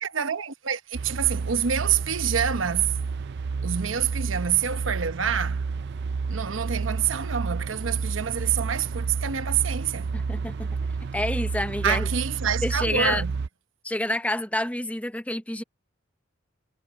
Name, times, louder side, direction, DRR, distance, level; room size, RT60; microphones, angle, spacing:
voice 1, 0.0-3.0 3.6-5.7 6.3-10.1 11.8-13.3, right 8 dB, 80° right, 1.0 m, -27 dB
sound 1, 0.9-13.5, right 4 dB, 60° right, 0.4 m, -30 dB
voice 2, 10.1-10.7 11.1-12.1 12.6-13.2 13.8-15.6, left 1 dB, 5° left, 0.8 m, -28 dB
head